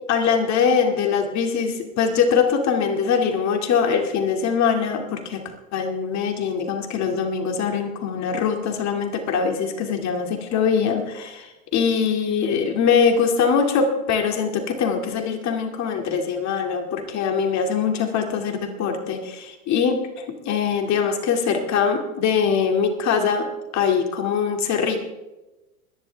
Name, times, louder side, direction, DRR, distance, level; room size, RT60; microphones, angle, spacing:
voice 1, 0.1-5.4 5.7-23.5 23.7-25.1, left 6 dB, 40° left, 4 dB, 2.4 m, -22 dB
22.5 x 10.5 x 3.5 m, 1.0 s
hypercardioid pair, 105°, 40 cm